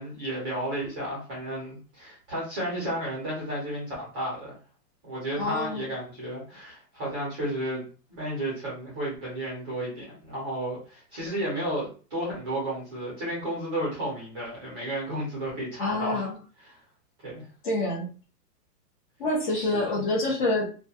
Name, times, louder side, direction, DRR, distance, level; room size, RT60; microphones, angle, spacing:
voice 1, 0.0-4.5 5.0-7.8 8.1-16.3 16.6-16.8 17.2-17.5 19.7-20.0, right 1 dB, 15° right, -6 dB, 0.5 m, -32 dB
voice 2, 5.4-5.8 15.8-16.3 17.6-18.1 19.2-20.6, left 2 dB, 35° left, -2 dB, 0.6 m, -27 dB
2.2 x 2.2 x 2.7 m, 0.36 s
hypercardioid pair, 160°, 47 cm